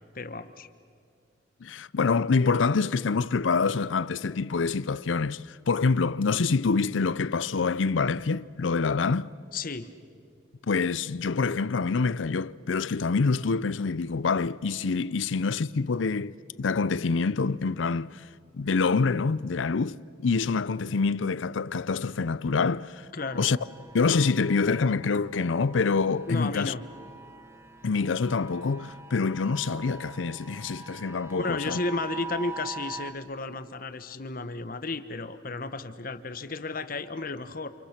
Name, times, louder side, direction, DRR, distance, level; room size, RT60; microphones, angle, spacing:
voice 1, 0.1-0.7 9.5-9.9 23.1-23.5 26.3-26.8 31.4-37.7, left 3 dB, 50° left, 1.0 m, -33 dB
voice 2, 1.6-9.3 10.7-18.2 18.5-20.0 20.2-23.1 23.4-23.6 23.9-26.7 27.8-31.8, left 4 dB, 90° left, 0.6 m, -26 dB
sound 1, 23.2-33.1, right 3 dB, 15° right, 1.2 m, -44 dB
29.5 x 28.0 x 5.9 m
head